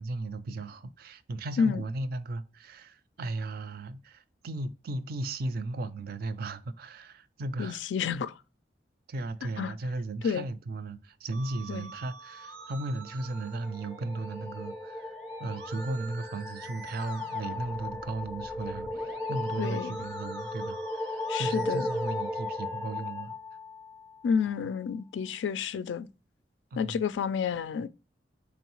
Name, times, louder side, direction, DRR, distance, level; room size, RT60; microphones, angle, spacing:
voice 1, 0.0-7.8 9.1-23.3 26.7-27.0, right 2 dB, 55° right, 0.4 m, -36 dB
voice 2, 7.6-8.4 9.6-9.7 10.2-10.5 11.7-11.9 19.6-20.0 21.3-21.9 24.2-26.1 26.7-27.9, left 6 dB, 80° left, 0.3 m, -30 dB
Musical instrument, 11.3-23.3, right 4 dB, 90° right, 0.7 m, -49 dB
sound 1, 13.0-24.4, left 2 dB, 5° left, 0.5 m, -36 dB
3.8 x 3.0 x 2.9 m
head